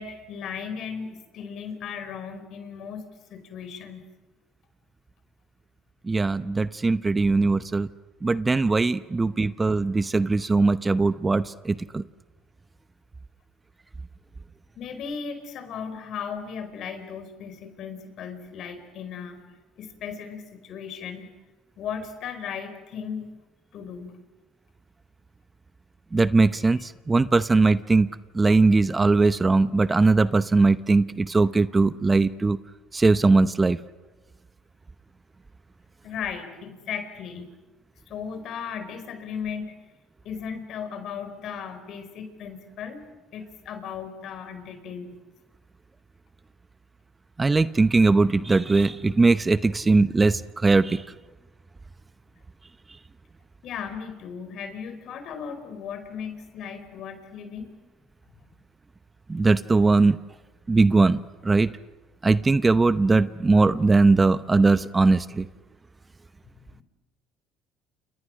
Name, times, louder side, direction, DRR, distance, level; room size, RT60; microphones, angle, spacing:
voice 1, 0.0-4.0 14.8-19.4 19.8-21.3 21.8-23.3 23.7-24.2 36.0-37.5 38.1-39.7 40.2-43.0 43.3-45.1 53.6-57.7 66.7-66.8, left 7 dB, 60° left, 9 dB, 4.7 m, -36 dB
voice 2, 6.0-7.9 8.2-12.0 26.1-28.1 28.3-32.6 32.9-33.8 47.4-51.0 59.3-60.2 60.7-61.7 62.2-65.5, right 3 dB, 20° right, 13 dB, 0.8 m, -20 dB
30.0 x 28.5 x 6.4 m, 1.2 s
supercardioid pair, 90°, 0 cm